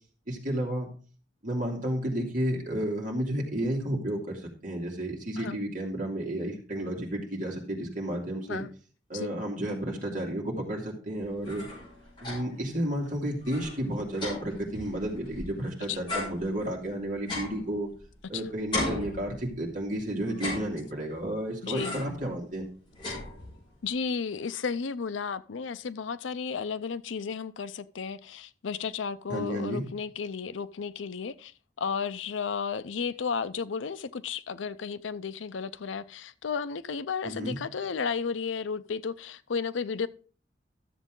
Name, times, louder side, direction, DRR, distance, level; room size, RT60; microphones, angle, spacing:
voice 1, 0.3-0.9 1.4-8.6 9.1-11.7 12.2-17.9 18.3-22.7 29.3-29.8 37.2-37.6, right 1 dB, 45° right, 2.5 m, -32 dB
sound 1, 11.2-12.7 13.0-13.1 13.4-15.6 16.1-18.3 18.7-19.8 20.3-21.2 21.8-22.3 22.6-23.8, left 1 dB, 25° left, 5.5 m, -37 dB
voice 2, 21.6-22.0 23.0-23.1 23.8-31.5 31.8-40.1, left 5 dB, 90° left, 0.5 m, -33 dB
13.0 x 7.2 x 3.8 m
head